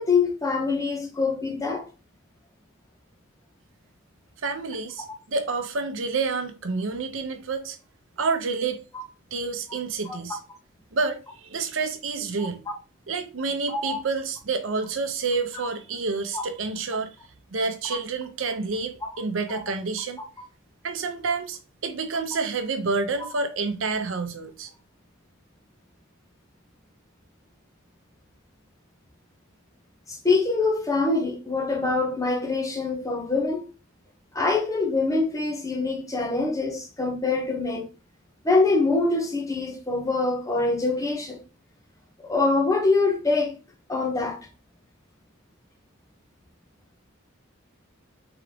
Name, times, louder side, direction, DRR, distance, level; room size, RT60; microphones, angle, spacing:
voice 1, 0.0-1.9 8.9-9.0 10.1-10.2 12.4-12.7 13.7-14.0 16.3-16.4 19.0-19.1 19.5-19.6 30.1-33.7 34.3-37.9 38.4-41.4 42.2-43.6 43.9-44.4, left 3 dB, 15° left, 0.8 m, -24 dB
voice 2, 4.4-7.8 8.2-8.8 9.3-10.4 10.9-12.6 13.1-17.1 17.5-20.2 20.8-24.7, right 4 dB, 65° right, 0.6 m, -29 dB
3.9 x 3.6 x 3.3 m
head